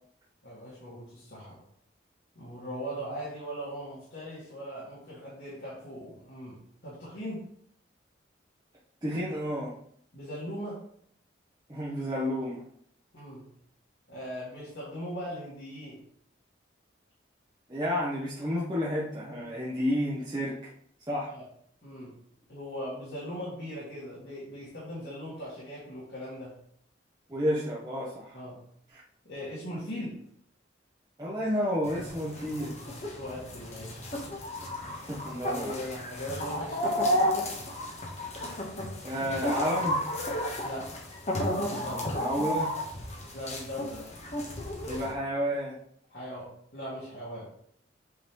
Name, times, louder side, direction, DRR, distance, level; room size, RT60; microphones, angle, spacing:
voice 1, 0.4-1.6 2.3-7.4 10.1-10.8 13.1-13.5 14.1-16.0 21.3-21.4 21.8-22.1 22.5-26.6 28.3-28.6 29.2-30.2 33.1-34.1 35.3-37.5 40.6-41.0 41.6-42.1 43.3-44.1 46.1-47.5, equal, 65° left, -8 dB, 2.3 m, -39 dB
voice 2, 9.0-9.7 11.7-12.6 17.7-20.7 21.1-21.3 27.3-28.4 28.9-29.0 31.2-32.7 34.8-35.7 39.0-40.0 42.2-42.7 44.9-45.8, equal, 20° right, -7 dB, 0.9 m, -31 dB
sound 1, 31.8-45.1, left 1 dB, 35° left, 1.2 m, -33 dB
8.0 x 3.8 x 3.1 m, 0.67 s
head